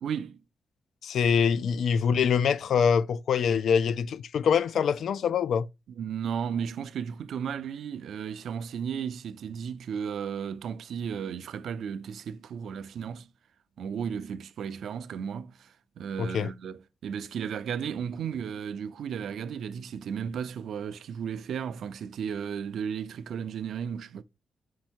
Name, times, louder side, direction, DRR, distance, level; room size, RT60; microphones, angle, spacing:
voice 1, 0.0-0.4 5.9-13.3 13.8-24.2, right 7 dB, 65° right, 0.5 m, -34 dB
voice 2, 1.0-5.7 16.2-16.5, left 7 dB, 60° left, 0.3 m, -24 dB
5.4 x 4.6 x 4.4 m
wide cardioid pair, 170°, 0 cm